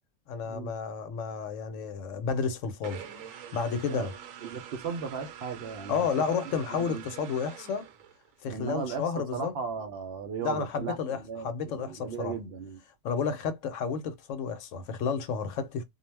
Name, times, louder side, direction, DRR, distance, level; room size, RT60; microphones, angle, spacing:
voice 1, 0.3-3.0 3.5-4.1 5.9-7.9 8.4-9.5 10.4-12.3 13.0-15.8, left 6 dB, 75° left, 0.9 m, -31 dB
sound 1, 2.8-8.4, right 9 dB, 80° right, 1.0 m, -46 dB
voice 2, 4.4-6.1 6.7-7.0 8.4-12.8, right 6 dB, 60° right, 0.7 m, -36 dB
2.3 x 2.1 x 3.1 m
omnidirectional pair, 1.3 m